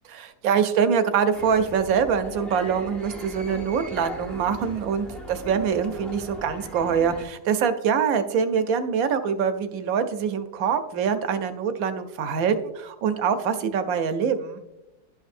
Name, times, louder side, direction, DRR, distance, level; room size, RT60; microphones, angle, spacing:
voice 1, 0.1-14.6, right 7 dB, 70° right, 9 dB, 1.0 m, -24 dB
sound 1, 1.3-7.2, right 1 dB, ahead, 0.4 m, -39 dB
11.5 x 5.4 x 2.5 m, 0.95 s
omnidirectional pair, 1.7 m